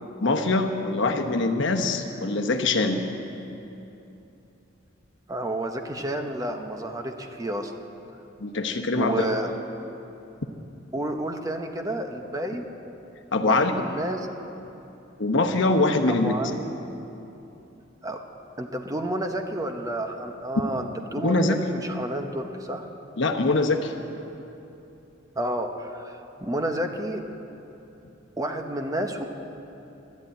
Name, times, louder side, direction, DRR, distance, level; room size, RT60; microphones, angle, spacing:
voice 1, 0.2-3.0 8.4-9.2 13.3-13.7 15.2-16.3 21.2-21.6 23.2-23.9, left 2 dB, 65° left, 6 dB, 1.0 m, -23 dB
voice 2, 5.3-7.7 9.0-9.5 10.9-12.6 13.4-14.3 16.1-16.7 18.0-18.2 18.6-22.9 25.4-27.2 28.4-29.2, right 1 dB, 20° right, 4 dB, 0.9 m, -30 dB
13.0 x 11.0 x 9.0 m, 2.9 s
head